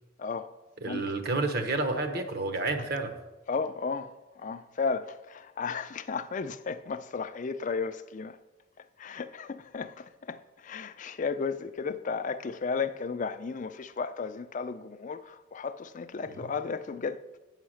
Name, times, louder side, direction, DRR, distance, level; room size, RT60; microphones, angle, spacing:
voice 1, 0.2-0.5 0.8-1.1 3.5-8.4 9.0-17.2, left 5 dB, 40° left, 0.4 m, -34 dB
voice 2, 0.8-3.1 16.3-16.5, right 2 dB, 50° right, 0.9 m, -30 dB
8.1 x 5.8 x 6.4 m
head